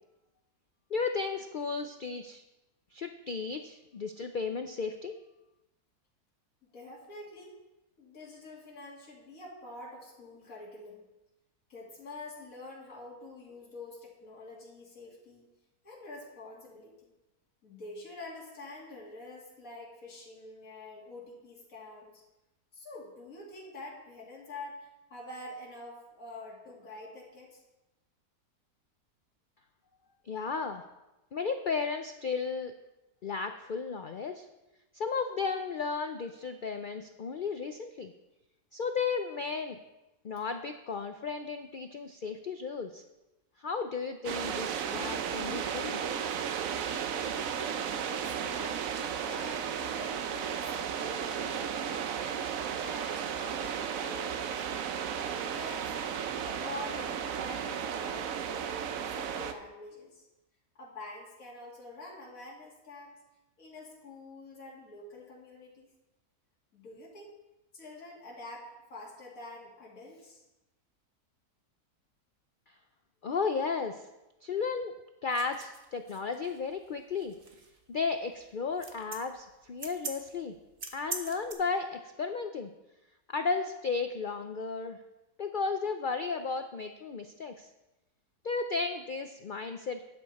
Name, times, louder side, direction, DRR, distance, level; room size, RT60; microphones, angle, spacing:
voice 1, 0.9-2.4 2.9-5.1 30.3-30.8 31.3-32.7 33.2-34.5 34.9-38.1 38.7-39.8 40.2-43.0 43.6-46.0 73.2-74.1 74.4-74.9 75.2-77.3 77.9-80.6 80.9-82.7 83.3-85.0 85.4-87.7 88.4-90.0, left 5 dB, 75° left, 7 dB, 0.4 m, -34 dB
voice 2, 6.6-7.6 8.0-11.0 11.7-15.4 15.8-17.1 17.6-22.1 22.7-27.6 47.9-48.8 49.2-52.2 52.8-54.5 55.2-55.9 56.3-60.3 60.7-63.1 63.6-65.9 66.7-67.3 67.7-70.4, left 2 dB, 60° left, -5 dB, 2.9 m, -46 dB
sound 1, 44.2-59.5, right 8 dB, 65° right, 1.0 m, -34 dB
sound 2, 75.3-81.5, right 4 dB, 40° right, 1.1 m, -43 dB
12.5 x 8.9 x 4.2 m, 0.99 s
omnidirectional pair, 1.6 m